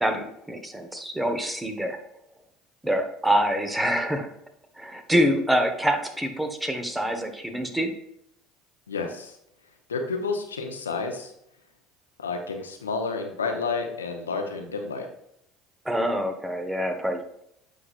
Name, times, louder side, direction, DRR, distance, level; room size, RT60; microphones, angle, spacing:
voice 1, 0.0-2.0 2.8-4.3 4.8-7.9 15.8-17.2, equal, 10° right, 5 dB, 1.2 m, -25 dB
voice 2, 8.9-9.4 9.9-11.3 12.2-15.1, left 4 dB, 90° left, 4 dB, 0.8 m, -30 dB
8.2 x 5.4 x 2.5 m, 0.75 s
hypercardioid pair, 65°, 0 cm